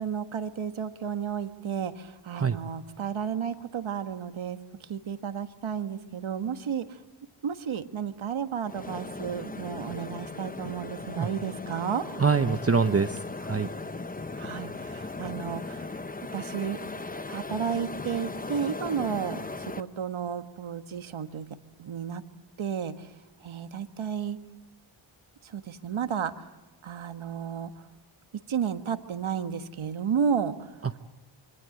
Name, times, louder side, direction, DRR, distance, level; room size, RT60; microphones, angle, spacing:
voice 1, 0.0-4.6 4.9-6.8 7.4-12.0 14.4-15.9 16.3-16.8 17.3-19.4 19.7-21.5 21.8-22.2 22.6-23.1 23.4-24.4 25.5-26.4 26.8-27.7 28.5-30.7, right 7 dB, 70° right, 9 dB, 1.6 m, -32 dB
sound 1, 8.7-19.8, left 3 dB, 15° left, 0.8 m, -38 dB
voice 2, 12.2-13.7 30.8-31.0, right 5 dB, 30° right, 8 dB, 0.9 m, -25 dB
26.0 x 24.0 x 7.9 m, 1.2 s
wide cardioid pair, 120°, 50 cm